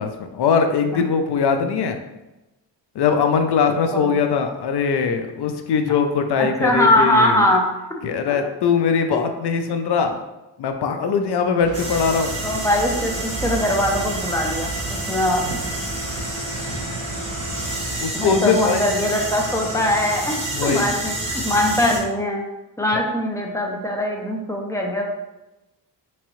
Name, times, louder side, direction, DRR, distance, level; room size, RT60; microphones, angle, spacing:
voice 1, 0.0-2.0 3.0-7.4 8.0-10.1 10.6-12.3 15.1-15.2 18.0-18.8 20.5-20.9, left 6 dB, 65° left, 7 dB, 0.5 m, -21 dB
voice 2, 6.4-7.7 12.4-14.7 15.1-15.4 18.1-22.4 22.8-25.0, left 1 dB, 5° left, 0 dB, 0.5 m, -21 dB
sound 1, 11.6-18.1, right 4 dB, 80° right, 0.6 m, -35 dB
sound 2, 11.7-22.0, right 1 dB, 35° right, 1.4 m, -29 dB
3.5 x 3.0 x 3.0 m, 1.0 s
cardioid pair, 110°, 44 cm